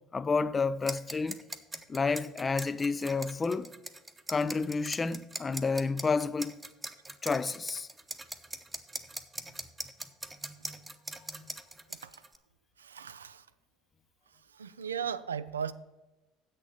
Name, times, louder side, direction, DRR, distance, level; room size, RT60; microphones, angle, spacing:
voice 1, 0.1-1.4 1.9-3.7 4.3-6.6 7.2-7.9, left 4 dB, 25° left, 0.4 m, -30 dB
sound 1, 0.8-12.4, right 2 dB, 15° right, 0.9 m, -42 dB
voice 2, 11.9-12.2 12.8-13.5 14.3-15.7, right 7 dB, 85° right, 0.3 m, -37 dB
8.0 x 6.5 x 7.2 m
hypercardioid pair, 65°, 0 cm